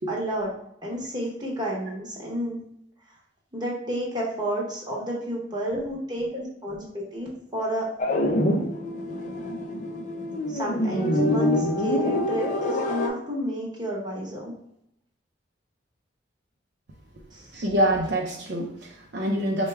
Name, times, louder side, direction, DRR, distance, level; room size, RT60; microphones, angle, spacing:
voice 1, 0.1-0.5 0.8-2.6 3.1-3.2 3.5-7.9 8.3-8.4 10.5-14.5 17.3-17.5, equal, 20° right, -3 dB, 0.9 m, -31 dB
sound 1, 8.0-13.1, left 1 dB, 40° left, 0.4 m, -25 dB
voice 2, 17.5-19.7, right 1 dB, 60° right, -1 dB, 0.5 m, -26 dB
4.5 x 2.2 x 3.2 m, 0.78 s
head